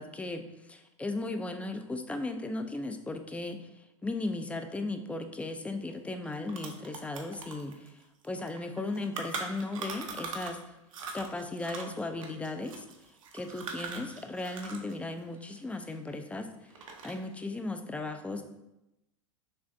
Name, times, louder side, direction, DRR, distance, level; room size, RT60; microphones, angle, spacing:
voice 1, 0.0-10.8 11.1-12.8 13.3-18.4, left 2 dB, 10° left, 7 dB, 0.3 m, -36 dB
sound 1, 5.9-6.0 6.2-10.6 10.9-14.9 15.2-16.4 16.7-17.3, right 4 dB, 80° right, 0.7 m, -41 dB
6.4 x 2.5 x 2.6 m, 0.91 s
hypercardioid pair, 95°, 17 cm